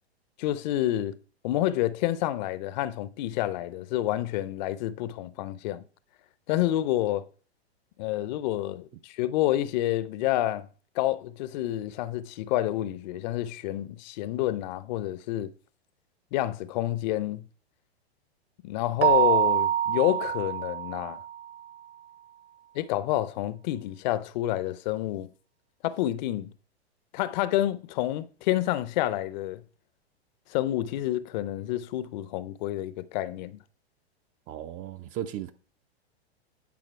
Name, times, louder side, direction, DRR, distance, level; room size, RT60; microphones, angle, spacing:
voice 1, 0.4-1.2 1.4-5.8 6.5-7.3 8.0-10.7 11.0-15.5 16.3-17.4 18.6-21.2 22.7-25.3 25.8-26.5 27.1-29.6 30.5-33.6, left 14 dB, 45° left, 0.5 m, -28 dB
Keyboard (musical), 19.0-21.5, right 10 dB, 90° right, 0.5 m, -25 dB
voice 2, 34.5-35.5, right 11 dB, 25° right, 0.4 m, -36 dB
9.4 x 5.1 x 4.5 m
hypercardioid pair, 115°, 33 cm